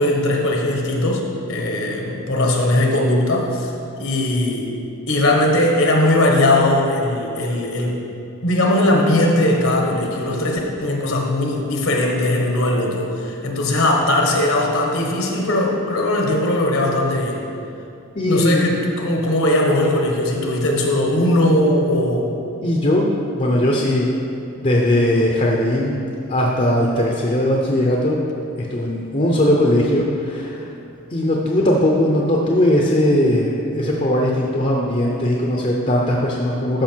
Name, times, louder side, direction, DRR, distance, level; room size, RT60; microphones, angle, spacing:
voice 1, 0.0-3.7 4.0-4.7 5.1-8.0 8.4-17.4 18.3-22.3, left 1 dB, 70° left, 0 dB, 1.3 m, -19 dB
voice 2, 18.1-18.7 22.6-24.1 24.6-26.0 26.3-28.2 28.6-30.7 31.1-36.8, left 1 dB, 30° left, -1 dB, 0.7 m, -19 dB
13.0 x 5.5 x 4.5 m, 2.7 s
head